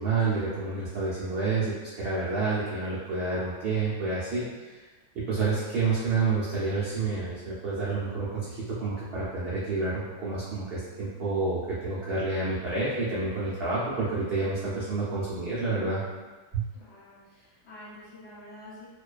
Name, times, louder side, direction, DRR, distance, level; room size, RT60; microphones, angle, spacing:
voice 1, 0.0-4.8 5.3-16.0 16.5-16.6, right 3 dB, 85° right, -8 dB, 0.5 m, -29 dB
voice 2, 16.7-18.9, left 1 dB, 55° left, -8 dB, 0.8 m, -48 dB
2.4 x 2.2 x 2.3 m, 1.3 s
omnidirectional pair, 1.6 m